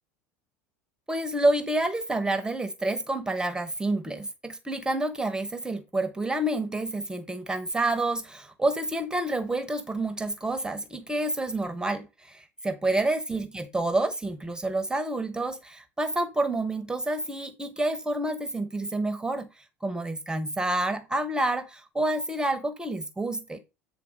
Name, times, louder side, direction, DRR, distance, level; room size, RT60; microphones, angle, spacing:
voice 1, 1.1-23.6, right 2 dB, 10° right, 10 dB, 1.0 m, -28 dB
8.5 x 3.8 x 5.0 m, 0.27 s
hypercardioid pair, 75°, 8 cm